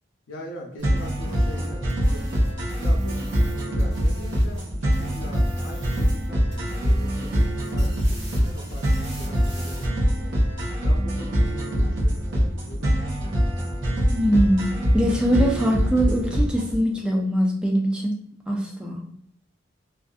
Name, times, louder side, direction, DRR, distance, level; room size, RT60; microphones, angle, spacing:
voice 1, 0.3-3.2 3.5-10.3 10.8-13.1, left 1 dB, 85° left, -1 dB, 0.6 m, -41 dB
sound 1, 0.8-4.6 4.9-6.3 6.5-9.8, right 1 dB, 65° right, 1.3 m, -46 dB
sound 2, 0.8-16.8, equal, 85° right, 0.8 m, -24 dB
voice 2, 14.1-18.2 18.5-19.0, equal, 5° right, 0 dB, 0.4 m, -22 dB
2.5 x 2.4 x 2.3 m, 0.70 s
head